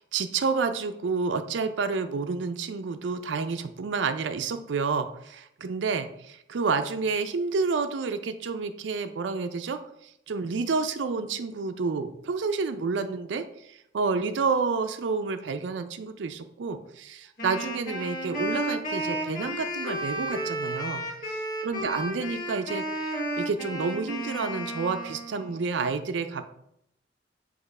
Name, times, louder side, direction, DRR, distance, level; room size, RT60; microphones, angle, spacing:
voice 1, 0.0-21.0 21.6-26.4, right 4 dB, 90° right, 9 dB, 0.4 m, -29 dB
Wind instrument woodwind instrument, 17.4-25.5, right 1 dB, 50° left, 1.7 m, -32 dB
6.0 x 3.0 x 5.3 m, 0.75 s
head